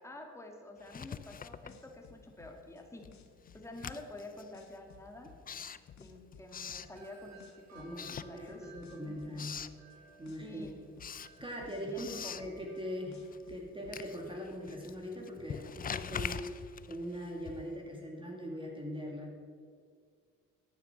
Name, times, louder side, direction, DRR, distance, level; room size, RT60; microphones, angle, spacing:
voice 1, 0.0-3.1 3.5-5.3 6.0-8.7 9.0-9.5 10.4-10.8 11.7-12.6, left 1 dB, 10° left, 2 dB, 2.2 m, -49 dB
Writing, 0.8-2.4 2.7-7.5 7.9-8.9 9.1-9.8 10.2-17.9, left 7 dB, 30° left, 0.5 m, -44 dB
sound 1, 1.7-4.2 4.5-7.1 7.4-10.0 10.2-12.8 13.1-14.0, left 8 dB, 65° left, 1.3 m, -57 dB
Wind chime, 6.8-13.5, right 4 dB, 60° right, 2.9 m, -60 dB
voice 2, 7.7-9.6 10.2-10.7 11.4-12.1 12.4-19.4, equal, 15° right, -1 dB, 2.3 m, -41 dB
11.5 x 9.2 x 6.1 m, 2.1 s
cardioid pair, 90°, 30 cm